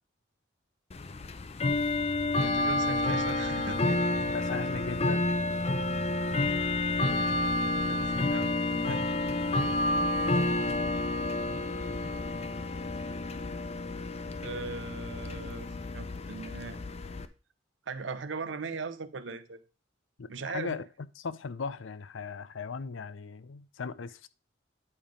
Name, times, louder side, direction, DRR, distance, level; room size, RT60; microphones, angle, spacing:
Bell / Tick-tock, 0.9-17.3, left 2 dB, 30° left, 0.5 m, -30 dB
voice 1, 2.4-4.1 7.9-9.0 14.4-16.8 17.9-19.6 20.3-20.8, right 4 dB, 65° right, 0.7 m, -39 dB
voice 2, 4.3-5.4 20.2-20.3 20.5-20.9 21.2-24.3, left 5 dB, 80° left, 0.5 m, -37 dB
9.7 x 3.5 x 5.0 m
head